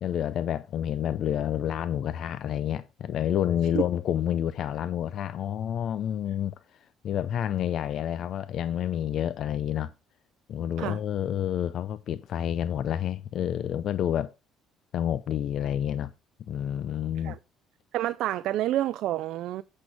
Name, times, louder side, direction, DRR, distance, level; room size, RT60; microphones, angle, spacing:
voice 1, 0.0-9.9 10.5-14.3 14.9-16.1 16.5-17.4, left 10 dB, 60° left, 0.5 m, -29 dB
voice 2, 17.9-19.6, right 13 dB, 70° right, 0.5 m, -28 dB
8.3 x 6.5 x 4.6 m
supercardioid pair, 80°, 0 cm